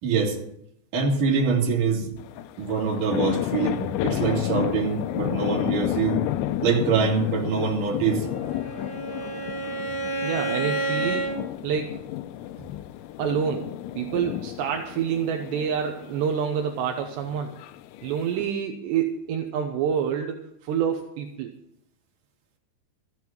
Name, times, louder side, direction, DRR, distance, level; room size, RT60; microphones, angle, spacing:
voice 1, 0.0-0.4 0.9-2.1 2.6-6.2 6.6-8.3, right 5 dB, 50° right, -1 dB, 3.8 m, -24 dB
sound 1, 2.2-18.5, left 14 dB, 90° left, 3.1 m, -32 dB
Bowed string instrument, 8.2-11.4, right 2 dB, 25° left, 5.8 m, -30 dB
voice 2, 10.2-11.3 11.6-12.0 13.2-17.5 18.0-21.5, right 8 dB, 80° right, 3 dB, 3.0 m, -27 dB
14.5 x 8.0 x 7.5 m, 0.75 s
omnidirectional pair, 5.2 m